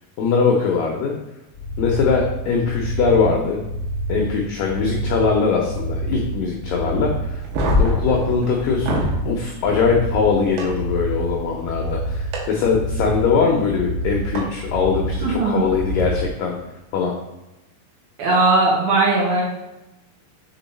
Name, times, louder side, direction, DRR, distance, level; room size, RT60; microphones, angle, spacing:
voice 1, 0.2-1.1 1.8-3.6 4.1-7.4 7.8-16.6 16.9-17.1, left 5 dB, 85° left, 0 dB, 1.9 m, -21 dB
sound 1, 1.5-16.3, right 1 dB, 55° left, 1.2 m, -28 dB
sound 2, 7.4-9.2 10.6-10.7 12.3-12.4 14.4-14.5 15.8-16.0, left 1 dB, 90° right, 3.5 m, -22 dB
voice 2, 15.2-15.7 18.2-19.4, right 2 dB, 65° right, -4 dB, 2.7 m, -18 dB
6.8 x 3.8 x 4.1 m, 0.98 s
omnidirectional pair, 4.9 m